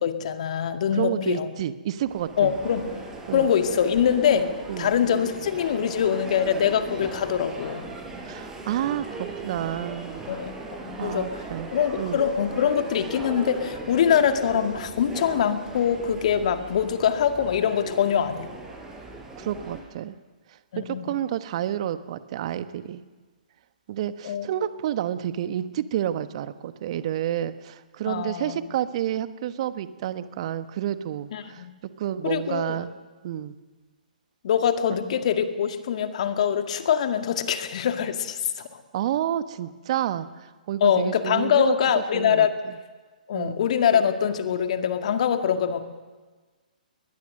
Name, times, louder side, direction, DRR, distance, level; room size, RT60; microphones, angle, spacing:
voice 1, 0.0-1.5 2.4-2.9 3.3-4.5 4.8-7.9 10.3-10.5 10.9-11.4 11.7-18.5 20.7-21.1 24.2-24.5 28.1-28.6 31.3-31.7 32.2-32.8 34.4-38.7 40.8-42.6 43.3-45.8, left 8 dB, 50° left, 7 dB, 1.9 m, -23 dB
voice 2, 0.9-2.5 3.3-3.5 4.7-4.9 8.2-10.2 11.0-12.2 19.4-20.2 20.7-23.0 23.9-31.7 32.0-32.9 33.2-33.5 34.9-35.0 38.9-41.7 42.1-42.7 43.3-43.6, right 11 dB, 45° right, 12 dB, 1.2 m, -30 dB
sound 1, 2.0-19.8, right 3 dB, 10° right, 5.2 m, -38 dB
21.5 x 20.5 x 6.6 m, 1.3 s
figure-of-eight pair, 125°, 5 cm